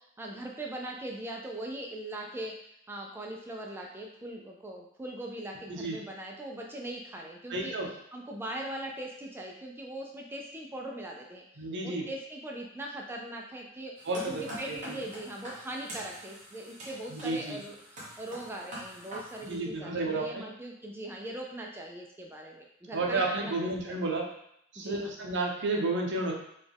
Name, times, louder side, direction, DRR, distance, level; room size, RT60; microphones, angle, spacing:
voice 1, 0.2-2.5 2.9-7.7 8.1-11.4 11.8-13.9 14.2-23.9 24.8-25.1, right 1 dB, 10° right, 0 dB, 0.3 m, -40 dB
voice 2, 7.5-7.9 11.6-12.1 14.0-15.0 17.1-17.6 19.4-20.4 22.9-24.3 24.7-26.3, right 2 dB, 55° right, 0 dB, 0.7 m, -32 dB
sound 1, 14.0-19.6, equal, 35° right, 1.1 m, -45 dB
4.2 x 2.3 x 3.4 m, 0.74 s
head